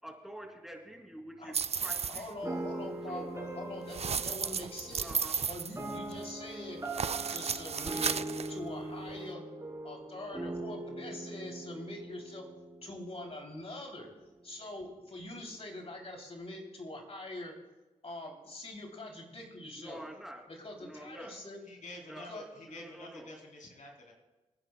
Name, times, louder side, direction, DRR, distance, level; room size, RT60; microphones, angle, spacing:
voice 1, 0.0-2.3 3.1-3.4 4.4-4.6 5.0-5.4 19.8-20.4 20.8-21.3 22.1-22.3 22.7-23.3, right 1 dB, ahead, 1 dB, 3.0 m, -47 dB
sound 1, 1.5-2.3 3.9-6.3 6.8-8.5, right 6 dB, 45° right, 0.5 m, -34 dB
voice 2, 2.1-5.1 5.5-6.8 7.3-9.4 9.8-12.5 12.8-14.1 14.4-17.5 18.0-20.0 20.5-21.6 22.2-22.5, left 1 dB, 45° left, 1 dB, 3.2 m, -44 dB
sound 2, 2.4-13.5, right 1 dB, 20° right, 3.3 m, -41 dB
voice 3, 21.7-24.1, left 1 dB, 60° left, 0 dB, 3.2 m, -48 dB
27.5 x 9.8 x 2.3 m, 1.1 s
supercardioid pair, 45°, 15 cm